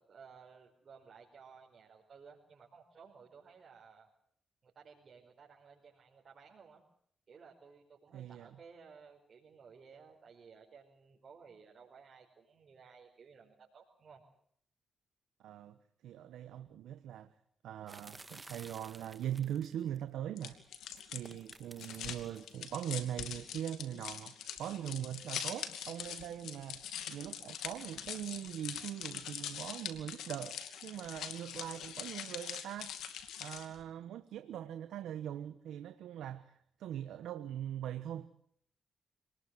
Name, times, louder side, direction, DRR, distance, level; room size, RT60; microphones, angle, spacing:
voice 1, 0.0-4.1 4.6-6.8 7.3-14.2, right 5 dB, 60° right, 5.2 m, -57 dB
voice 2, 8.1-8.5 15.4-15.8 16.0-17.3 17.6-20.6 21.1-33.0 33.4-38.3, right 11 dB, 85° right, 1.2 m, -41 dB
sound 1, 17.9-20.0 20.8-22.5, right 2 dB, 25° right, 1.8 m, -54 dB
sound 2, 20.4-33.8, left 9 dB, 85° left, 2.6 m, -43 dB
27.0 x 20.0 x 7.9 m
supercardioid pair, 55°, 0 cm